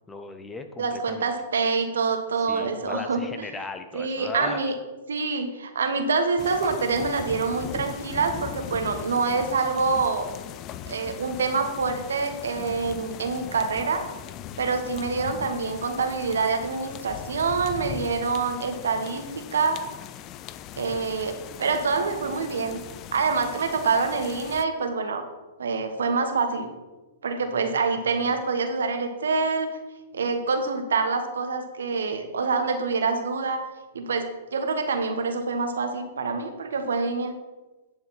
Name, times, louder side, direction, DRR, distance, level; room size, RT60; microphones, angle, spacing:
voice 1, 0.1-1.3 2.4-4.7 27.5-28.4, left 3 dB, 10° left, 7 dB, 0.8 m, -38 dB
voice 2, 0.8-3.2 3.9-4.7 5.1-10.3 10.9-14.0 14.6-19.8 20.8-22.8 23.1-25.2 25.6-26.7 27.2-29.7 30.1-33.6 33.9-37.3, right 4 dB, 75° right, 6 dB, 1.4 m, -26 dB
sound 1, 6.4-24.6, left 11 dB, 35° left, 0.5 m, -39 dB
10.5 x 6.7 x 4.2 m, 1.2 s
hypercardioid pair, 115°, 0 cm